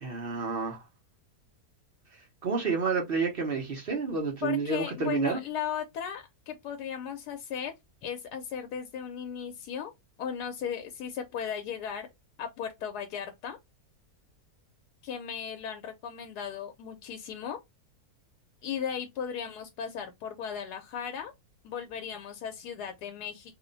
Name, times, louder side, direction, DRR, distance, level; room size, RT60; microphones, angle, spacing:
voice 1, 0.0-0.8 2.4-5.4, right 4 dB, 50° right, 0.7 m, -29 dB
voice 2, 4.4-7.7 8.0-9.9 10.2-12.1 12.4-13.6 15.0-17.6 18.6-21.3 21.6-23.5, left 8 dB, 90° left, 1.1 m, -36 dB
2.9 x 2.1 x 3.8 m
omnidirectional pair, 1.6 m